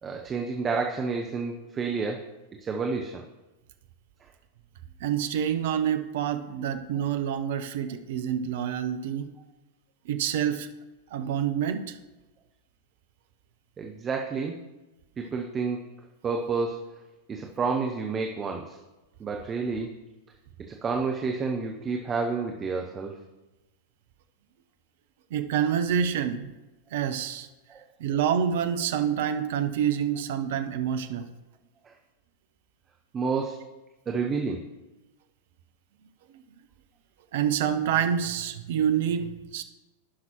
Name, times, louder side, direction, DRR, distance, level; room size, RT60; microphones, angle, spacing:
voice 1, 0.0-2.2 2.6-3.2 13.8-14.6 15.2-15.8 16.2-16.8 17.3-18.8 19.2-19.9 20.7-23.1 27.7-27.8 31.8-31.9 33.1-33.6 34.1-34.6, right 4 dB, 20° right, 2 dB, 0.8 m, -29 dB
voice 2, 5.0-9.3 10.0-10.7 11.1-12.0 25.3-26.6 26.9-27.5 28.0-31.3 37.3-39.6, right 8 dB, 55° right, 9 dB, 0.7 m, -27 dB
16.0 x 5.9 x 3.0 m, 1.1 s
figure-of-eight pair, 90°, 0 cm